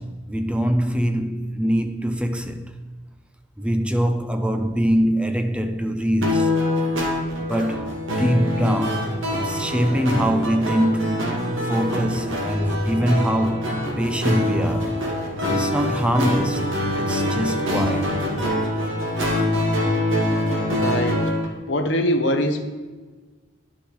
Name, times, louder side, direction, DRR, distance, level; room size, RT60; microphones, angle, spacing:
voice 1, 0.0-2.8 3.6-6.6 7.4-11.3 11.6-15.0 15.5-18.2, equal, 5° right, 0.5 m, -23 dB
sound 1, 6.2-21.5, left 1 dB, 75° right, 2.2 m, -24 dB
voice 2, 20.7-21.2 21.7-22.7, left 1 dB, 60° left, 1.1 m, -22 dB
10.5 x 6.3 x 4.8 m
head